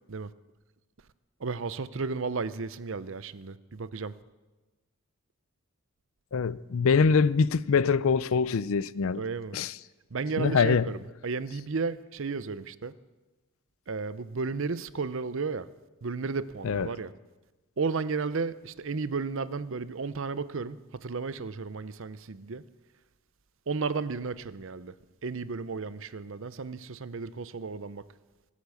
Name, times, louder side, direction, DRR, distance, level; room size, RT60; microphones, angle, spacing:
voice 1, 1.4-4.2 9.1-9.6 10.1-12.9 13.9-15.7 16.0-17.1 17.8-22.6 23.7-25.0 25.2-28.1, right 4 dB, 60° right, 0.6 m, -33 dB
voice 2, 6.3-9.2 9.5-9.7 10.4-10.8 16.6-16.9, left 5 dB, 65° left, 0.4 m, -24 dB
24.5 x 8.3 x 7.1 m
head